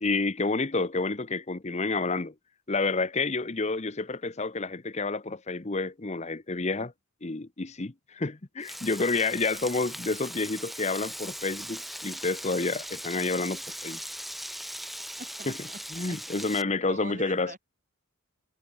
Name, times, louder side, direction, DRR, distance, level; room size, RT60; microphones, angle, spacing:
voice 1, 0.0-2.3 2.7-6.9 7.2-14.0 15.5-15.6 15.9-17.6, left 3 dB, 30° left, 0.9 m, -29 dB
Frying (food), 8.6-16.6, equal, ahead, 2.1 m, -39 dB
voice 2, 15.2-16.2 16.9-17.6, right 3 dB, 40° right, 8.0 m, -43 dB
head